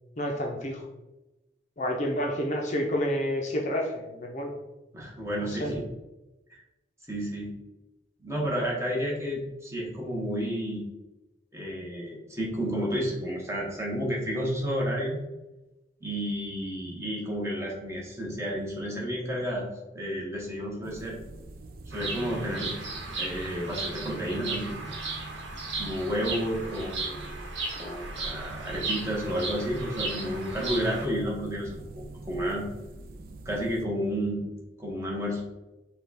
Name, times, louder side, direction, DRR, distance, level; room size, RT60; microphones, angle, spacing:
voice 1, 0.2-0.8 1.8-4.5 5.4-5.7, equal, 40° left, 1 dB, 0.5 m, -29 dB
voice 2, 4.9-5.8 6.5-6.6 7.1-7.5 8.2-10.8 11.5-15.2 16.0-19.7 19.9-21.2 21.9-22.7 23.2-24.8 25.8-27.4 27.8-32.6 33.4-34.5 34.8-35.4, equal, 15° right, -3 dB, 0.9 m, -31 dB
sound 1, 20.8-33.9, right 2 dB, 50° right, 0.4 m, -43 dB
Bird vocalization bird call bird song, 21.9-31.1, right 3 dB, 75° right, 1.0 m, -36 dB
5.4 x 2.3 x 4.0 m, 1.0 s
head